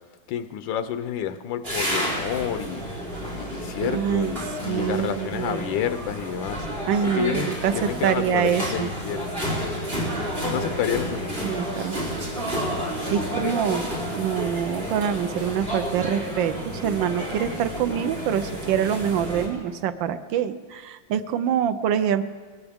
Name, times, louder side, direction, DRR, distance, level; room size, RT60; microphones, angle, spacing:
voice 1, 0.3-2.9 3.4-6.7 7.0-9.2 10.5-11.5 13.2-13.6, left 9 dB, 80° left, 10 dB, 1.5 m, -29 dB
sound 1, 1.6-19.5, equal, 30° right, 4.0 m, -30 dB
voice 2, 3.8-4.3 4.6-5.6 6.9-8.9 11.4-12.0 12.6-12.7 13.1-13.8 14.1-22.2, right 9 dB, 85° right, 11 dB, 1.4 m, -25 dB
22.0 x 17.0 x 3.5 m, 1.5 s
omnidirectional pair, 2.0 m